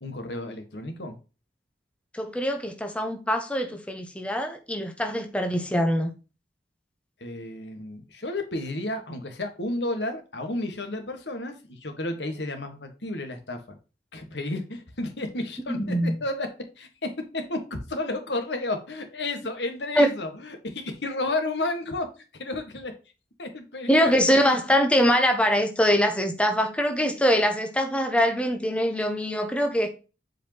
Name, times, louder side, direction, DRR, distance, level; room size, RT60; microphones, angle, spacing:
voice 1, 0.0-1.2 7.2-13.8 14.1-16.5 16.8-22.9 23.4-24.6, left 2 dB, 80° left, 1.7 m, -32 dB
voice 2, 2.1-6.1 15.7-16.1 20.0-20.1 23.9-29.9, equal, 5° left, 1.0 m, -23 dB
7.8 x 4.9 x 3.0 m
head